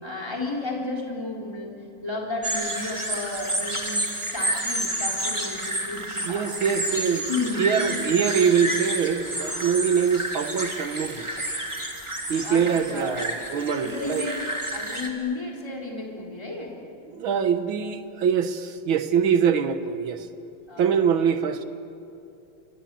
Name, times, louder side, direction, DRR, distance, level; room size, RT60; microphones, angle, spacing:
voice 1, 0.0-6.8 7.3-8.2 12.4-13.4 13.8-14.4 14.7-16.8 20.7-21.2, left 3 dB, 10° left, -2 dB, 3.9 m, -33 dB
sound 1, 2.4-15.1, right 1 dB, 15° right, 2.5 m, -30 dB
voice 2, 6.3-7.3 7.6-11.3 12.3-14.3 17.1-20.3 20.8-21.6, right 7 dB, 70° right, 9 dB, 2.1 m, -23 dB
30.0 x 24.5 x 7.6 m, 2.6 s
omnidirectional pair, 2.3 m